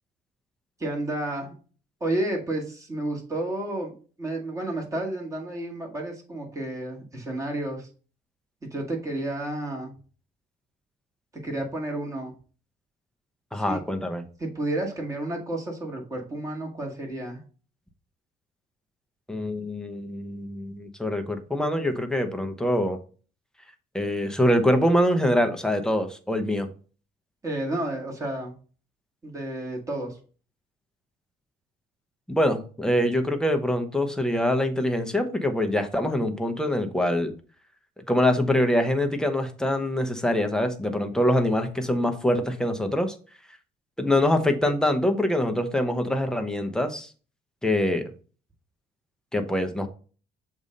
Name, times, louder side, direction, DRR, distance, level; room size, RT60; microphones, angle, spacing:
voice 1, 0.8-1.5 2.0-3.9 4.2-7.9 8.7-9.9 11.4-12.3 13.5-13.8 14.4-17.4 27.4-28.5 29.2-30.2, right 1 dB, 20° right, -1 dB, 2.0 m, -31 dB
voice 2, 13.5-14.2 19.3-23.0 23.9-26.7 32.4-37.3 38.1-43.1 44.0-47.1 47.6-48.1 49.3-49.9, left 1 dB, 5° left, 6 dB, 0.8 m, -24 dB
6.9 x 2.7 x 5.2 m, 0.39 s
cardioid pair, 110°, 17 cm